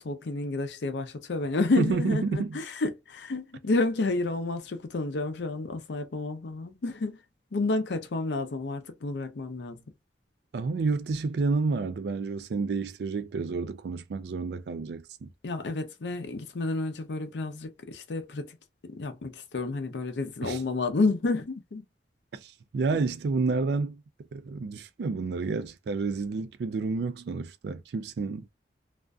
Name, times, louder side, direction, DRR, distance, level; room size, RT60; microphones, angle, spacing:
voice 1, 0.0-7.2 7.5-9.8 15.4-18.6 18.8-21.8, left 3 dB, 80° left, 0.5 m, -30 dB
voice 2, 1.8-2.6 10.5-15.3 20.4-20.6 22.4-24.0 24.3-28.5, right 4 dB, 70° right, 0.3 m, -30 dB
2.4 x 2.4 x 2.2 m
head